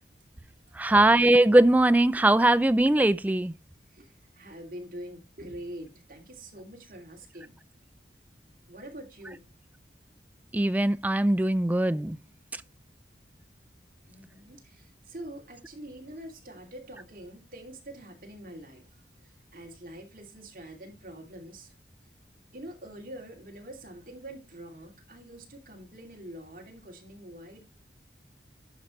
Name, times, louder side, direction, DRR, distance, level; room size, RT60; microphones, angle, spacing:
voice 1, 0.8-3.5 10.5-12.2, right 1 dB, 10° right, 0.3 m, -21 dB
voice 2, 3.9-7.6 8.7-9.4 14.1-18.8 19.2-21.8 22.5-27.6, right 1 dB, 50° right, 2.6 m, -45 dB
11.0 x 5.5 x 3.1 m
head